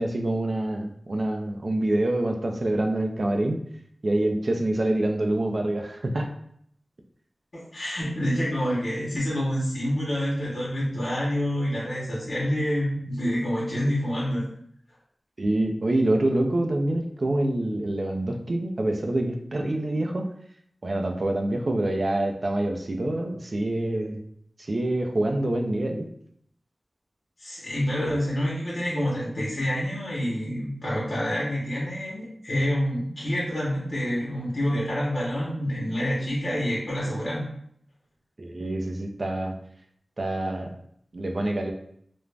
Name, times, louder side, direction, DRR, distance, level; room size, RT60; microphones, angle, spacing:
voice 1, 0.0-3.6 4.0-6.3 15.4-20.3 20.8-24.2 24.7-26.1 38.4-39.5 40.2-40.7 41.1-41.7, right 1 dB, 60° right, 3 dB, 0.4 m, -26 dB
voice 2, 7.5-14.5 27.4-37.4, equal, 60° left, -7 dB, 0.8 m, -27 dB
2.4 x 2.1 x 3.2 m, 0.67 s
wide cardioid pair, 65°, 0 cm